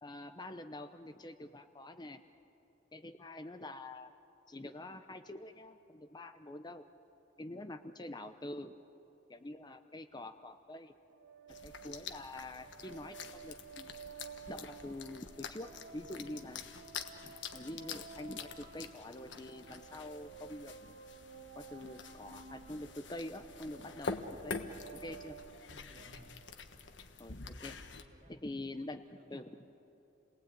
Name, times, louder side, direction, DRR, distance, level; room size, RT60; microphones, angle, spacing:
voice 1, 0.0-2.2 2.9-4.1 4.5-6.8 7.4-8.7 9.3-10.9 11.6-13.9 14.5-16.7 17.2-20.7 21.5-25.4 27.2-27.8 28.3-29.0 29.3-29.6, left 1 dB, 25° left, 8 dB, 0.7 m, -46 dB
sound 1, 11.1-26.5, right 6 dB, 80° right, 1.7 m, -53 dB
sound 2, 11.5-28.0, left 4 dB, 80° left, 1.4 m, -47 dB
voice 2, 25.7-26.3 27.8-28.4 28.7-29.5, right 1 dB, 45° right, 3 dB, 2.6 m, -61 dB
29.5 x 19.5 x 9.2 m, 2.9 s
head